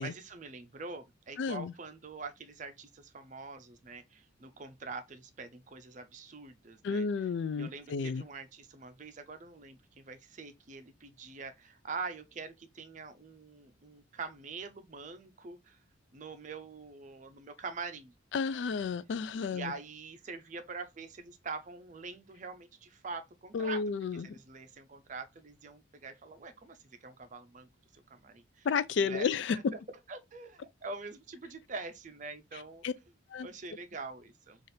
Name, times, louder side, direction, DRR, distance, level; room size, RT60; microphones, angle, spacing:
voice 1, 0.0-7.1 7.6-15.8 16.1-18.1 19.5-23.8 24.1-27.7 27.9-28.7 29.0-29.3 29.7-29.8 30.1-32.9 33.4-34.6, right 4 dB, 40° right, 0.5 m, -44 dB
voice 2, 1.4-1.7 6.8-8.2 18.3-19.7 23.5-24.3 28.6-29.6 32.8-32.9 33.3-33.5, left 5 dB, 65° left, 0.3 m, -32 dB
4.2 x 2.5 x 3.2 m
head